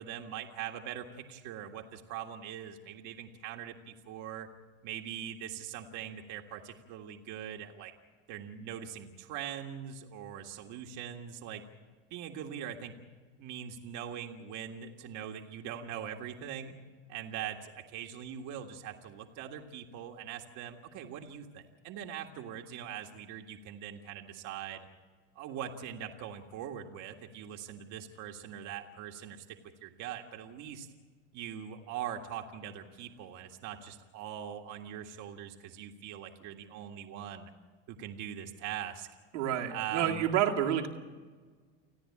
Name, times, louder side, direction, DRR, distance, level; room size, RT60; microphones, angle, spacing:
voice 1, 0.0-4.5 4.8-7.9 8.3-11.6 12.1-13.0 13.4-16.8 17.1-24.9 25.4-30.9 31.3-37.5 37.9-39.1 39.7-40.5, right 9 dB, 55° right, 3 dB, 1.8 m, -42 dB
voice 2, 39.3-40.9, right 10 dB, 85° right, -1 dB, 2.4 m, -29 dB
29.5 x 10.0 x 8.7 m, 1.5 s
hypercardioid pair, 90°, 35 cm